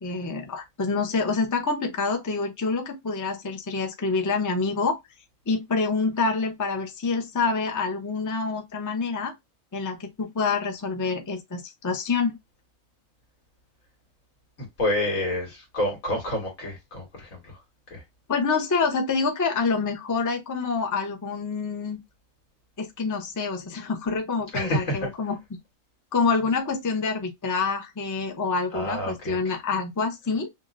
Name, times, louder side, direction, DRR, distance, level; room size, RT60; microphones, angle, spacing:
voice 1, 0.0-5.0 5.5-9.3 9.7-12.4 18.3-22.0 22.8-25.4 26.1-30.5, left 4 dB, 20° left, 0.5 m, -27 dB
voice 2, 14.6-17.6 17.9-18.0 24.5-25.1 28.7-29.5, left 1 dB, 85° left, 2.0 m, -29 dB
5.5 x 2.1 x 2.5 m
omnidirectional pair, 1.4 m